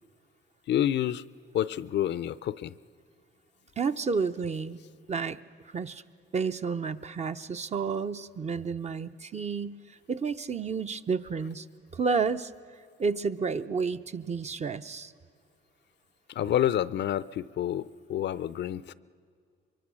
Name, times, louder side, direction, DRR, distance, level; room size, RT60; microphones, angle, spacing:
voice 1, 0.7-1.2 1.5-2.7 16.3-18.9, left 11 dB, 60° left, 17 dB, 0.5 m, -28 dB
voice 2, 3.8-4.8 5.1-5.4 5.7-6.0 6.3-9.8 10.1-11.7 11.9-12.5 13.0-15.1, right 5 dB, 35° right, 10 dB, 0.7 m, -30 dB
24.0 x 23.5 x 6.3 m, 2.2 s
cardioid pair, 90°, 20 cm